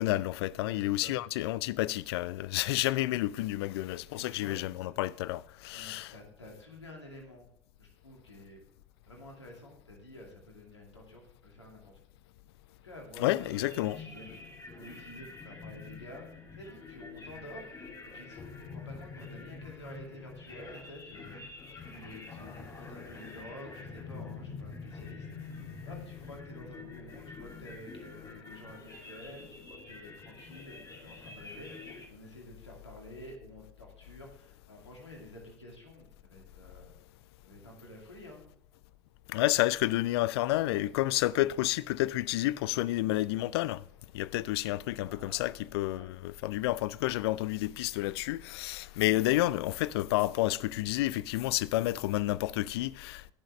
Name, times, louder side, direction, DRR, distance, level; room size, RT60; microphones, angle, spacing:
voice 1, 0.0-6.1 13.2-14.0 39.3-43.8 44.1-53.3, left 16 dB, 65° left, 0.4 m, -30 dB
voice 2, 0.5-1.3 4.1-4.9 5.7-7.5 7.8-8.6 9.0-12.0 12.8-17.9 18.1-18.4 18.7-21.4 21.9-25.3 25.8-36.9 37.4-38.5 45.0-45.6 45.9-46.1, left 1 dB, 85° left, 2.3 m, -50 dB
sound 1, 13.3-32.1, left 4 dB, 25° left, 2.4 m, -46 dB
18.0 x 6.3 x 3.2 m
figure-of-eight pair, 65°, 14 cm